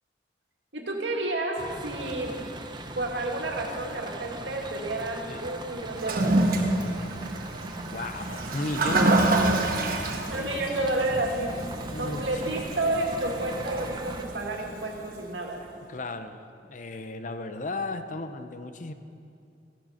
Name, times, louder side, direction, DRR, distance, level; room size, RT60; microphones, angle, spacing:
voice 1, 0.7-2.5 3.0-6.4 10.1-11.5 12.0-15.7, right 2 dB, 90° right, 0 dB, 2.1 m, -30 dB
sound 1, 1.6-14.2, right 2 dB, 25° right, 0.8 m, -41 dB
Toilet flush, 5.9-15.2, right 2 dB, 55° right, 1.3 m, -28 dB
voice 2, 7.8-9.9 10.3-10.5 11.9-12.5 15.9-18.9, left 2 dB, 45° left, 9 dB, 0.7 m, -35 dB
15.0 x 11.5 x 5.8 m, 2.5 s
head